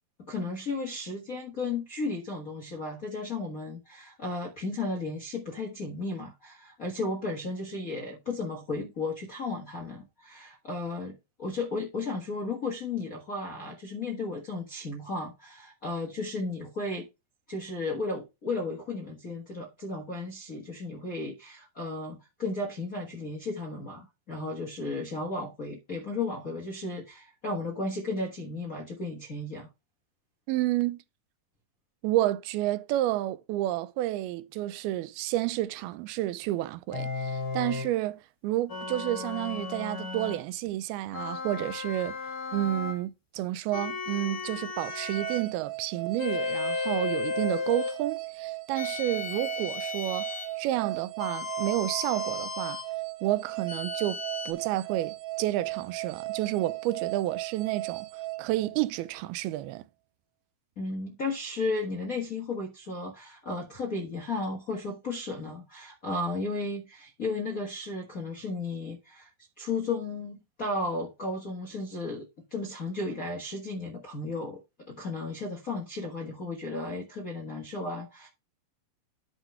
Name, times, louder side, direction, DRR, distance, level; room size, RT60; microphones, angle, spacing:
voice 1, 0.2-17.1 17.5-29.7 60.8-69.3 69.6-78.3, left 3 dB, 50° left, 1.0 m, -34 dB
voice 2, 30.5-31.0 32.0-42.2 42.5-50.3 50.6-52.8 53.2-58.1 58.4-59.8, right 15 dB, 90° right, 2.5 m, -30 dB
sound 1, 36.9-37.9 38.7-40.4 41.1-43.0 43.7-45.5 46.2-48.0 48.8-50.6 51.2-52.9 53.7-54.5, left 4 dB, 75° left, 0.8 m, -35 dB
sound 2, 44.8-59.2, right 18 dB, 70° right, 2.3 m, -37 dB
10.0 x 3.9 x 5.6 m
omnidirectional pair, 4.3 m